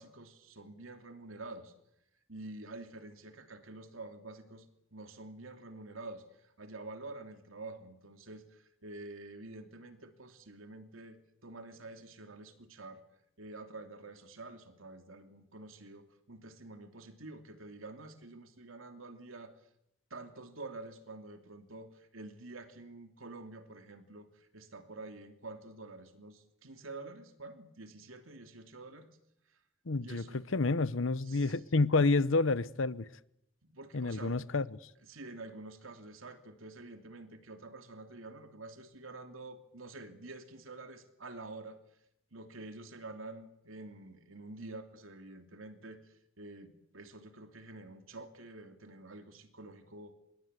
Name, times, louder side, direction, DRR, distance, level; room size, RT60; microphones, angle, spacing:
voice 1, 0.0-1.7 2.3-4.7 4.9-13.0 13.4-19.5 20.1-29.1 29.5-29.6 30.0-30.4 31.2-31.6 33.6-34.6 35.1-41.8 42.3-50.1, right 2 dB, 90° right, 2.9 m, -48 dB
voice 2, 29.9-33.1 33.9-34.7, left 3 dB, 70° left, 0.9 m, -29 dB
26.5 x 22.0 x 8.2 m
head